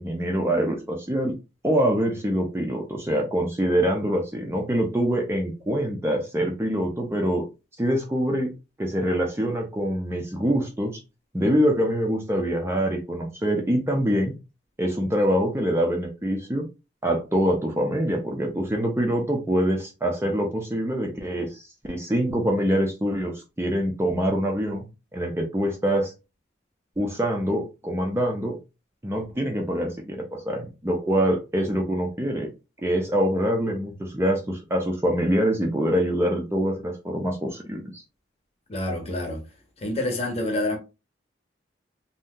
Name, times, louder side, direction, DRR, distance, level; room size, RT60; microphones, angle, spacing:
voice 1, 0.0-1.3 1.6-7.4 7.8-8.5 8.8-11.0 11.3-14.3 14.8-16.7 17.0-24.9 25.1-26.1 27.0-28.6 29.0-32.5 32.8-38.0, equal, 15° right, 0.4 m, -25 dB
voice 2, 38.7-39.4 39.8-40.8, left 1 dB, 35° left, 0.8 m, -27 dB
2.7 x 2.1 x 3.6 m
head